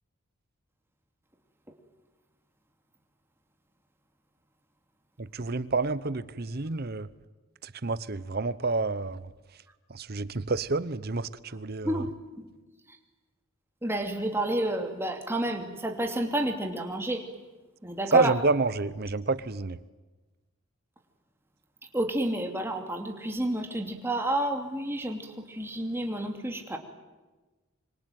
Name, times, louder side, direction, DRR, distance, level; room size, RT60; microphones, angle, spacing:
voice 1, 5.2-7.1 7.6-9.3 9.9-12.0 18.1-19.8, right 3 dB, 45° right, 0.8 m, -28 dB
voice 2, 11.8-12.5 12.9-13.0 13.8-17.2 17.8-18.3 21.9-26.8, right 1 dB, 10° right, 2.7 m, -30 dB
26.0 x 25.0 x 9.2 m
head